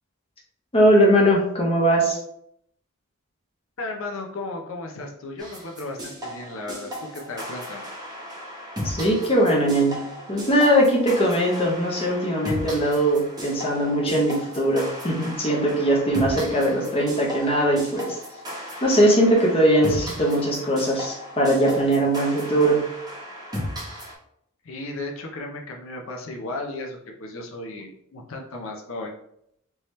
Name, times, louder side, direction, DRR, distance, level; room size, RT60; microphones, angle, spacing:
voice 1, 0.7-2.2 8.8-10.0 10.3-18.2 18.8-22.8, right 1 dB, 25° left, -3 dB, 0.7 m, -20 dB
voice 2, 3.8-7.8 24.6-29.1, left 2 dB, 65° left, 1 dB, 0.6 m, -35 dB
sound 1, 5.4-24.1, equal, 20° right, 0.9 m, -36 dB
3.4 x 2.8 x 3.1 m, 0.73 s
head